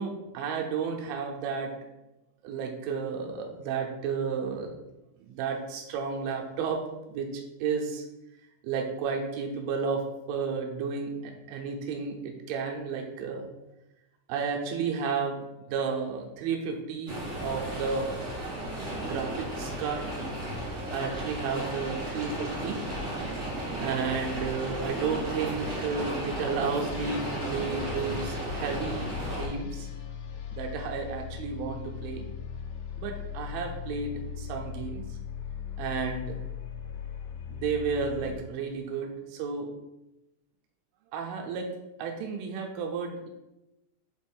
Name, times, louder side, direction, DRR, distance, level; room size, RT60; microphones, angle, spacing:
voice 1, 0.0-1.8 2.4-4.7 5.2-6.8 7.1-7.3 7.6-8.0 8.6-13.5 14.3-18.2 19.1-20.1 20.9-22.8 23.8-29.9 30.5-32.2 33.0-35.0 35.8-36.4 37.5-39.7 41.1-41.7 42.0-43.3, right 5 dB, 80° right, 1 dB, 3.3 m, -32 dB
sound 1, 17.1-29.5, right 1 dB, 60° right, 1.2 m, -34 dB
sound 2, 26.4-38.4, left 7 dB, 85° left, 2.6 m, -39 dB
7.5 x 2.6 x 5.3 m, 0.95 s
omnidirectional pair, 5.5 m